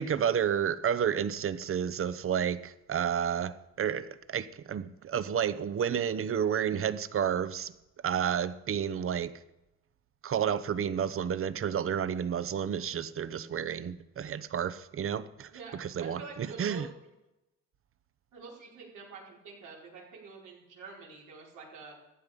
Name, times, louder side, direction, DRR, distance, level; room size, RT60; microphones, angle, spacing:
voice 1, 0.0-7.7 8.0-9.3 10.2-16.9, right 8 dB, 45° right, 0.8 m, -31 dB
voice 2, 15.5-16.8 18.3-21.9, right 4 dB, 85° right, 5.1 m, -47 dB
14.5 x 9.7 x 5.3 m
cardioid pair, 90°, 30 cm